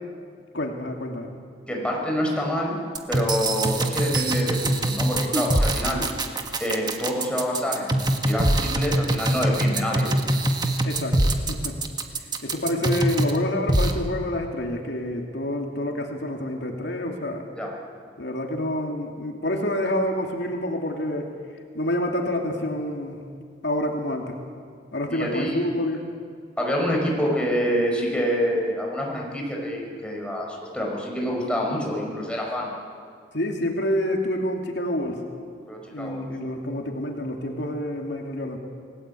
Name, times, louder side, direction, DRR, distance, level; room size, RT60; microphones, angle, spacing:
voice 1, 0.5-1.3 10.8-11.8 12.4-17.4 18.2-21.3 21.7-23.2 23.6-24.4 24.9-26.1 33.3-35.2 35.9-38.6, left 1 dB, 75° left, 1 dB, 2.8 m, -28 dB
voice 2, 1.7-2.8 3.1-6.0 6.6-10.1 17.6-17.7 25.1-25.8 26.6-32.7 35.7-36.3, equal, 5° left, -2 dB, 5.6 m, -27 dB
sound 1, 2.9-13.4 13.7-13.9, right 1 dB, 25° right, 1.6 m, -23 dB
28.0 x 19.5 x 8.5 m, 2.1 s
head